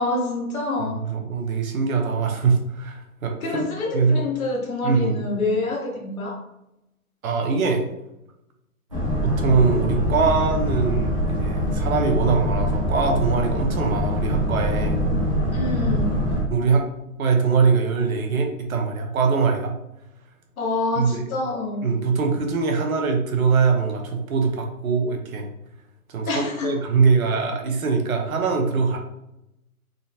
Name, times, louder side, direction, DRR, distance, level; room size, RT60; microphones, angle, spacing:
voice 1, 0.0-1.0 3.4-6.4 8.9-9.1 15.5-16.3 20.6-21.9 26.3-26.8, left 2 dB, 65° left, -2 dB, 1.3 m, -27 dB
voice 2, 0.8-3.7 3.9-4.3 4.8-5.2 7.2-7.8 9.2-15.0 16.5-16.8 17.2-19.7 21.0-21.2 21.8-25.5 26.1-29.0, right 5 dB, 65° right, 3 dB, 0.8 m, -22 dB
Boat Water vehicle, 8.9-16.4, equal, 25° right, 0.4 m, -24 dB
3.7 x 2.1 x 2.7 m, 0.86 s
hypercardioid pair, 155°, 45 cm